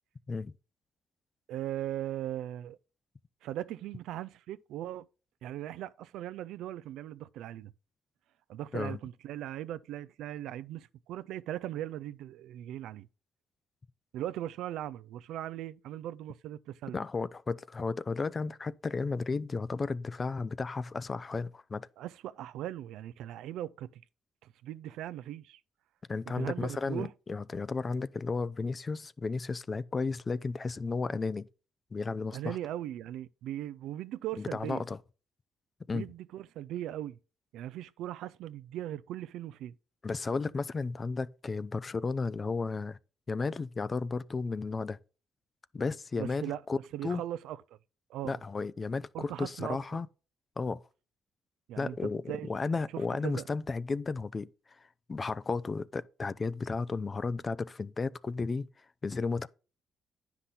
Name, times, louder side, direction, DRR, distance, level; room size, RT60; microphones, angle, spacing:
voice 1, 1.5-2.8 3.4-5.1 5.4-7.7 8.5-13.1 14.1-17.0 22.0-24.0 24.4-25.6 26.3-27.1 32.3-34.9 35.9-37.2 37.5-39.7 46.2-46.6 46.9-47.6 48.1-48.4 49.1-49.8 51.7-52.5 52.9-53.4, right 12 dB, 85° right, 0.4 m, -39 dB
voice 2, 16.9-21.9 26.1-31.5 31.9-32.6 34.4-35.0 35.9-36.1 40.0-43.0 43.3-45.0 45.7-47.2 48.2-50.1 50.6-50.8 51.8-52.2 52.5-54.5 55.1-58.7 59.0-59.5, left 4 dB, 35° left, 0.5 m, -33 dB
9.8 x 5.8 x 3.9 m
cardioid pair, 90°, 0 cm